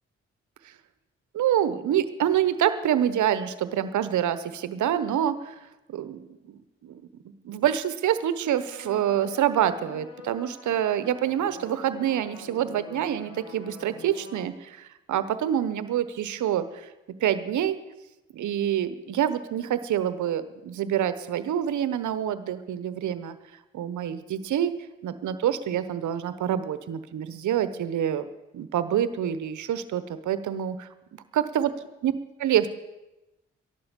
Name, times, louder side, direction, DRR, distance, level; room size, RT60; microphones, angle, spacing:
voice 1, 1.3-5.5 5.9-7.0 7.4-16.9 17.2-17.8 18.3-23.4 23.7-24.7 25.0-28.2 28.5-31.7 32.0-32.1 32.4-32.7, right 10 dB, 80° right, 12 dB, 1.0 m, -26 dB
sound 1, 8.7-14.5, left 3 dB, 70° left, 2.9 m, -46 dB
13.5 x 11.5 x 6.9 m, 1.0 s
supercardioid pair, 45°, 30 cm